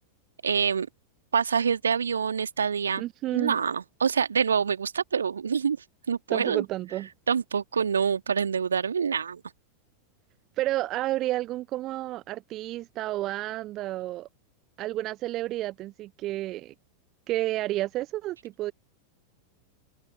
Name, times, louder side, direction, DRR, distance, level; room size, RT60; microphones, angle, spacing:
voice 1, 0.4-0.9 1.3-3.0 3.3-5.8 6.1-6.6 7.3-9.4, right 6 dB, 70° right, 2.0 m, -26 dB
voice 2, 3.0-3.6 6.3-7.1 10.6-14.3 14.8-16.7 17.3-18.7, right 16 dB, 35° right, 0.6 m, -30 dB
open air
figure-of-eight pair, 90°, 0 cm